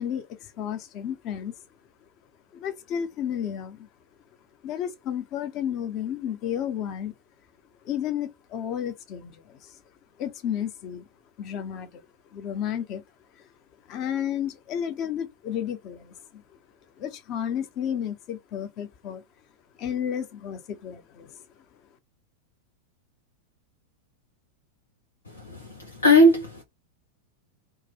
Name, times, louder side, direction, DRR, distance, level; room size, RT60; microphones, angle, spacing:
voice 1, 0.0-1.5 2.5-3.9 4.6-7.1 7.8-9.8 10.2-11.1 11.4-12.0 12.3-13.0 13.4-13.5 13.9-16.4 17.0-19.2 19.8-21.4, left 9 dB, 40° left, 0.6 m, -32 dB
voice 2, 26.0-26.6, left 1 dB, 75° left, 0.7 m, -17 dB
3.0 x 2.1 x 3.5 m
figure-of-eight pair, 90°, 0 cm